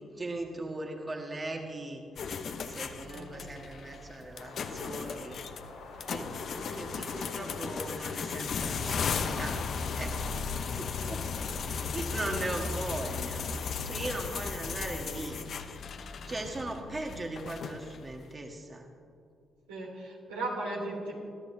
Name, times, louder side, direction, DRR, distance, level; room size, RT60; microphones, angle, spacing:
voice 1, 0.1-2.0 2.7-5.4 6.1-9.7 10.0-10.2 10.7-11.2 11.6-15.4 16.2-18.9, right 2 dB, 30° right, 2 dB, 1.6 m, -39 dB
sound 1, 2.2-18.1, left 5 dB, 60° left, 0.9 m, -36 dB
sound 2, 4.3-15.4, left 4 dB, 75° left, 3.2 m, -49 dB
voice 2, 19.7-21.2, right 2 dB, 85° right, -4 dB, 3.0 m, -37 dB
22.0 x 13.0 x 2.7 m, 2.5 s
hypercardioid pair, 45°, 0 cm